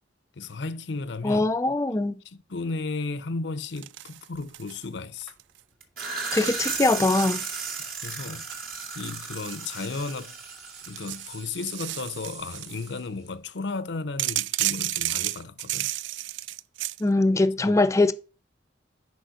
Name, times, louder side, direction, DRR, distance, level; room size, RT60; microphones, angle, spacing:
voice 1, 0.3-1.5 2.3-5.3 8.0-8.5 8.9-10.4 10.9-15.9 17.6-17.8, left 3 dB, 70° left, 0.7 m, -34 dB
voice 2, 1.2-2.2 6.3-7.4 17.0-18.1, left 2 dB, 15° left, 0.4 m, -22 dB
sound 1, 3.8-4.8 5.2-5.6 6.2-7.9 8.5-10.2 10.7-12.9 14.2-17.0, right 16 dB, 80° right, 0.3 m, -33 dB
sound 2, 5.8-11.4, right 5 dB, 55° right, 2.1 m, -34 dB
sound 3, 8.5-13.3, right 5 dB, 40° right, 1.7 m, -48 dB
6.4 x 5.2 x 6.3 m
head